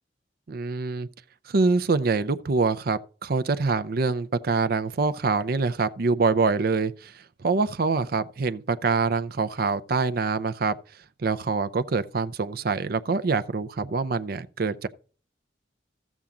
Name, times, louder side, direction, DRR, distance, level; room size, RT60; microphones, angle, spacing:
voice 1, 0.5-1.1 1.5-10.8 11.2-14.9, right 4 dB, 55° right, 0.5 m, -25 dB
13.5 x 7.2 x 3.7 m
head